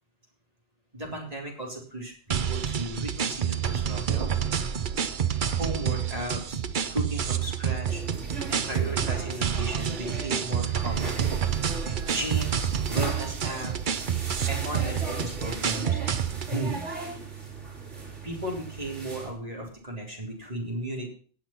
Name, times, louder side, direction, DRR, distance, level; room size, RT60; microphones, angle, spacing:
voice 1, 0.9-4.3 5.5-6.6 6.9-8.0 8.5-14.1 14.5-16.0 16.3-16.9 18.2-21.1, right 1 dB, 35° right, 0 dB, 3.5 m, -35 dB
sound 1, 2.3-16.5, right 8 dB, 50° right, 0.8 m, -28 dB
sound 2, 7.9-19.3, right 3 dB, 85° right, 3.5 m, -38 dB
18.0 x 6.1 x 5.8 m, 0.43 s
omnidirectional pair, 1.2 m